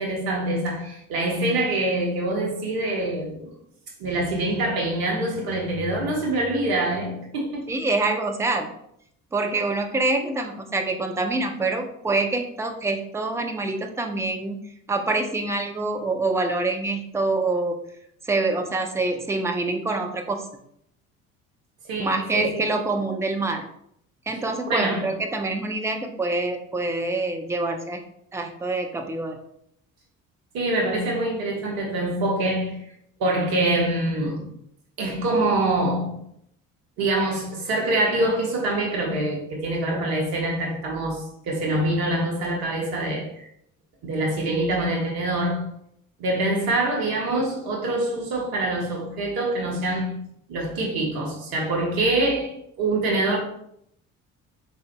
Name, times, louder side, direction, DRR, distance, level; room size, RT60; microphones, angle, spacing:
voice 1, 0.0-3.5 4.0-7.7 21.8-22.7 24.7-25.0 30.5-32.8 33.2-34.4 35.0-36.2 37.0-43.5 44.0-45.6 46.2-50.1 50.5-52.5 52.8-53.4, right 2 dB, 65° right, 1.4 m, -25 dB
voice 2, 7.7-8.7 9.3-14.6 14.9-17.8 18.3-20.4 22.0-23.6 24.3-28.0 28.3-29.4, right 2 dB, 5° right, 0.5 m, -26 dB
5.0 x 3.8 x 2.2 m
figure-of-eight pair, 50°, 40 cm